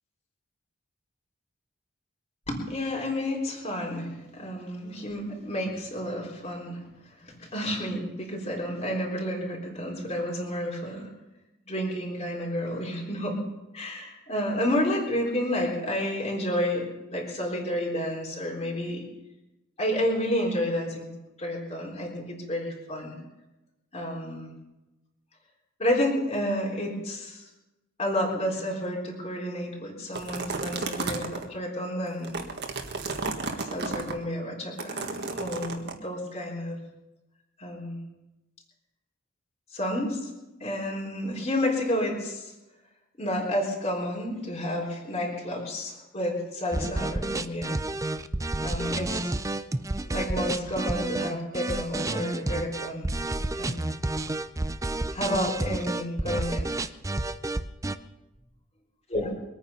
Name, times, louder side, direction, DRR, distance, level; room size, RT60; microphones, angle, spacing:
voice 1, 2.5-11.1 11.7-13.4 13.7-19.0 19.8-21.1 21.4-23.1 23.9-24.5 25.8-27.5 28.0-32.4 33.4-36.8 37.6-38.0 39.7-40.3 40.6-42.5 43.2-47.8 48.6-49.3 50.0-53.1 53.5-53.9 55.1-56.7 59.1-59.3, left 1 dB, 30° left, -2 dB, 3.7 m, -30 dB
sound 1, 30.1-31.5 32.1-34.1 34.8-35.9, right 3 dB, 55° right, 1.7 m, -32 dB
sound 2, 46.7-58.0, right 2 dB, 15° right, 0.5 m, -30 dB
23.5 x 9.2 x 5.6 m, 1.0 s
head